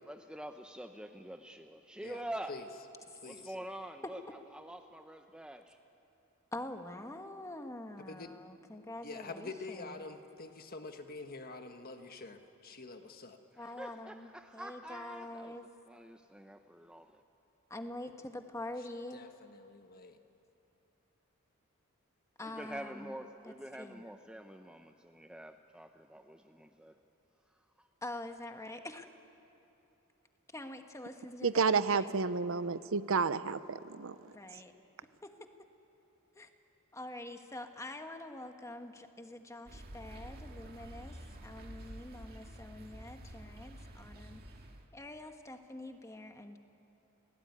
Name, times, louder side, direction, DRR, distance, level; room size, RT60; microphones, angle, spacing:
voice 1, 0.1-2.5 3.3-5.8 13.5-17.2 22.4-27.0 27.8-27.9, right 1 dB, 5° right, 6 dB, 0.7 m, -46 dB
voice 2, 3.1-3.5 8.0-8.3 9.0-13.4 19.1-20.2, left 3 dB, 45° left, 6 dB, 1.5 m, -46 dB
voice 3, 6.5-9.9 13.6-14.3 14.5-15.7 17.7-19.2 22.4-23.2 23.8-24.0 28.0-29.1 30.5-32.2 34.3-34.7 35.2-35.3 36.3-36.5 36.9-44.4 44.9-46.6, left 1 dB, 15° left, 6 dB, 1.4 m, -45 dB
voice 4, 31.4-34.1, right 5 dB, 65° right, 14 dB, 0.7 m, -30 dB
sound 1, 39.7-44.9, right 1 dB, 45° right, 2.2 m, -49 dB
29.0 x 18.0 x 9.6 m, 2.8 s
head